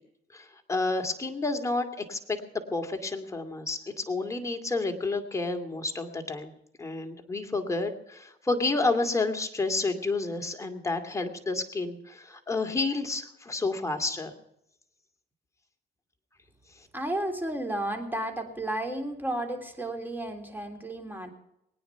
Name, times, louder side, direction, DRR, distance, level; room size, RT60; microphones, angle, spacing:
voice 1, 0.3-2.4 2.7-6.5 6.8-14.3, left 3 dB, 15° left, 4 dB, 2.5 m, -30 dB
voice 2, 16.9-21.3, right 1 dB, 10° right, 5 dB, 3.6 m, -32 dB
22.0 x 9.7 x 5.8 m, 0.79 s
cardioid pair, 90°, 20 cm